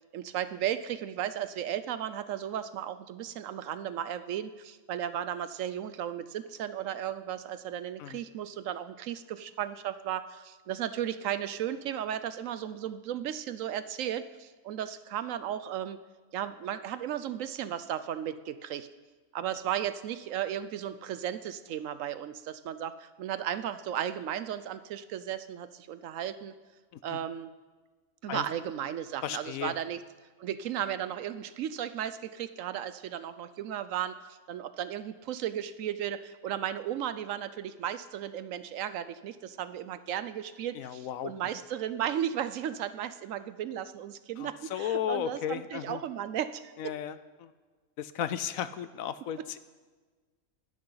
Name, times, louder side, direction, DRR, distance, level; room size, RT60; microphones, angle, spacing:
voice 1, 0.1-16.0 16.3-18.9 19.3-26.5 27.0-27.5 28.2-30.0 30.4-46.7, right 10 dB, 70° right, 13 dB, 0.9 m, -35 dB
voice 2, 29.2-29.7 40.7-41.3 44.4-46.0 46.8-47.5 48.0-49.6, left 10 dB, 75° left, 13 dB, 1.0 m, -35 dB
20.5 x 10.5 x 3.9 m, 1.4 s
omnidirectional pair, 1.5 m